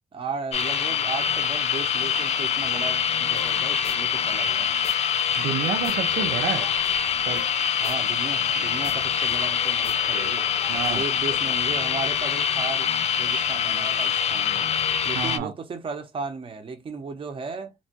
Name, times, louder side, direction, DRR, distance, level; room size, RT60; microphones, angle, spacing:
voice 1, 0.1-4.7 7.8-10.5 10.9-12.9 13.2-14.7 15.0-17.7, right 4 dB, 30° right, 0.6 m, -35 dB
sound 1, 0.5-15.4, left 8 dB, 40° left, 0.4 m, -24 dB
sound 2, 3.4-3.5 3.8-4.9 5.2-8.6 8.8-8.9 9.2-11.3, left 5 dB, 65° left, 0.9 m, -42 dB
voice 2, 5.3-6.7 7.2-7.4 10.7-11.1 15.1-15.5, right 9 dB, 85° right, 0.4 m, -29 dB
2.9 x 2.2 x 2.8 m
wide cardioid pair, 150°, 17 cm